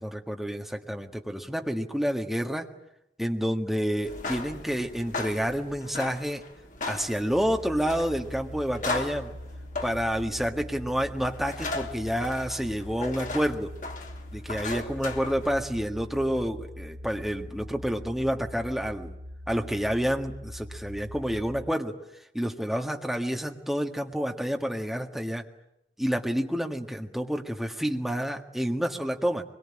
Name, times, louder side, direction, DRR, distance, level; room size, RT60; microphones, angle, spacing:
voice 1, 0.0-2.7 3.2-6.4 6.8-9.3 9.8-13.7 14.3-19.1 19.5-22.0 22.3-25.4 26.0-29.4, equal, ahead, 3 dB, 1.7 m, -29 dB
sound 1, 4.0-15.9, left 3 dB, 45° left, 2.6 m, -38 dB
sound 2, 7.3-21.7, left 1 dB, 90° right, 1.2 m, -42 dB
24.0 x 22.5 x 9.9 m, 0.85 s
head